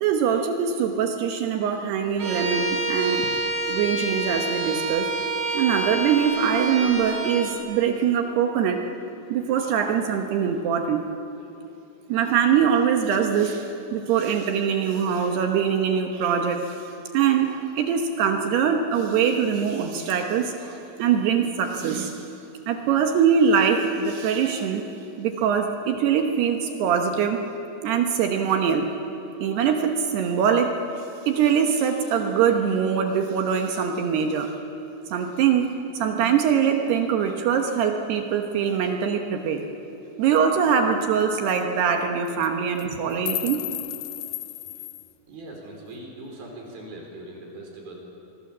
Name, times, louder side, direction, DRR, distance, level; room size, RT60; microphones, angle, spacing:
voice 1, 0.0-3.3 3.7-5.1 5.5-8.8 9.3-11.1 12.1-16.6 17.1-22.2 22.7-24.8 25.2-27.4 27.8-28.9 29.4-30.7 31.3-34.5 35.1-35.7 36.0-39.6 40.2-43.6, right 7 dB, 70° right, 4 dB, 2.9 m, -23 dB
Bowed string instrument, 2.2-7.6, right 2 dB, 35° right, 5.7 m, -28 dB
sound 1, 40.3-40.4 40.7-40.8 41.0-41.2 41.5-41.6 42.3-42.5 42.8-45.1, left 15 dB, 75° left, 2.3 m, -33 dB
voice 2, 45.3-48.0, right 1 dB, 50° right, 0 dB, 5.9 m, -40 dB
26.5 x 21.0 x 7.4 m, 2.9 s
omnidirectional pair, 5.4 m